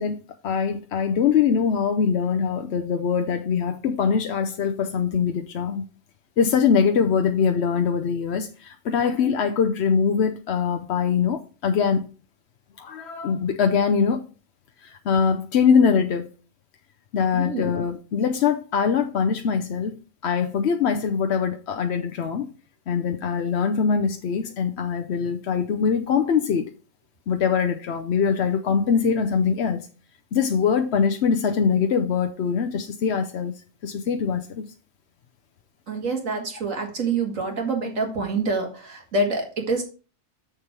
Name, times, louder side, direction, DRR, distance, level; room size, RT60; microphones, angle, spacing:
voice 1, 0.0-5.8 6.4-12.1 12.8-14.2 14.8-16.3 17.1-22.5 22.9-26.7 27.3-29.8 30.3-34.7, left 6 dB, 60° left, 0.9 m, -23 dB
voice 2, 17.3-17.7 35.9-39.8, right 3 dB, 80° right, 2.3 m, -26 dB
7.0 x 6.6 x 4.6 m
omnidirectional pair, 1.3 m